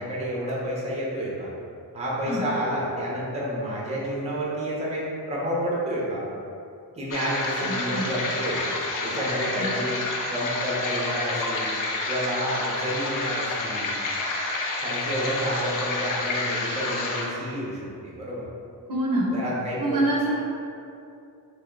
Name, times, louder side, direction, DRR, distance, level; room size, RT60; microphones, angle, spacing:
voice 1, 0.0-1.5 1.9-6.2 7.0-8.6 9.0-10.0 10.3-11.8 12.1-13.9 14.8-18.5 19.3-20.0, equal, 15° right, -5 dB, 0.8 m, -29 dB
sound 1, 7.1-17.2, left 2 dB, 55° left, 0.6 m, -29 dB
voice 2, 7.6-8.1 9.5-9.7 18.9-19.4 19.8-20.4, right 1 dB, 50° right, -4 dB, 0.8 m, -26 dB
3.4 x 2.7 x 3.8 m, 2.5 s
cardioid pair, 110°, 40 cm